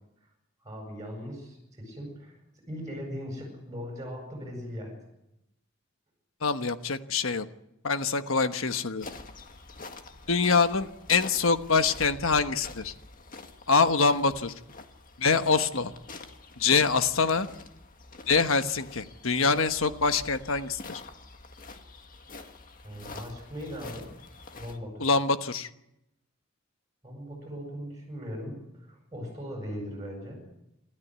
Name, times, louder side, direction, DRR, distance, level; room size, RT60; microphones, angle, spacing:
voice 1, 0.6-5.0 22.8-24.1 24.6-25.1 27.0-30.4, equal, 15° right, 0 dB, 7.8 m, -39 dB
voice 2, 6.4-7.5 7.8-9.0 10.3-12.9 13.7-14.5 15.2-15.9 16.6-17.5 18.3-21.0 25.0-25.7, left 4 dB, 70° left, 9 dB, 1.2 m, -25 dB
sound 1, 9.0-24.8, left 3 dB, 40° left, 1.8 m, -46 dB
27.5 x 13.5 x 9.4 m, 0.86 s
head